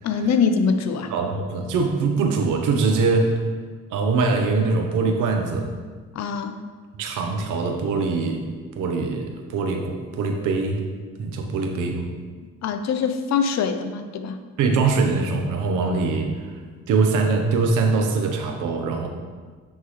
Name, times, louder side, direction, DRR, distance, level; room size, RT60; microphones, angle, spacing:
voice 1, 0.0-1.1 6.2-6.6 12.6-14.4, left 5 dB, 65° left, 8 dB, 0.6 m, -23 dB
voice 2, 1.1-3.4 3.9-5.7 7.0-8.5 8.8-10.8 11.2-12.0 14.6-16.6 16.9-19.1, right 4 dB, 90° right, 3 dB, 0.8 m, -23 dB
8.8 x 3.7 x 3.1 m, 1.5 s
cardioid pair, 90°, 30 cm